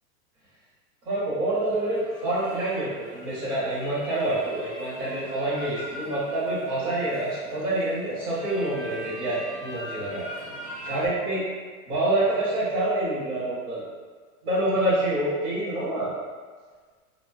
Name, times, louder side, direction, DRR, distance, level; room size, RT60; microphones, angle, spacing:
voice 1, 1.0-10.2 10.8-11.4 11.9-13.8 14.4-16.1, right 1 dB, 40° right, -10 dB, 1.0 m, -27 dB
sound 1, 1.5-11.1, equal, ahead, 0.4 m, -41 dB
2.8 x 2.2 x 2.4 m, 1.5 s
hypercardioid pair, 140°, 44 cm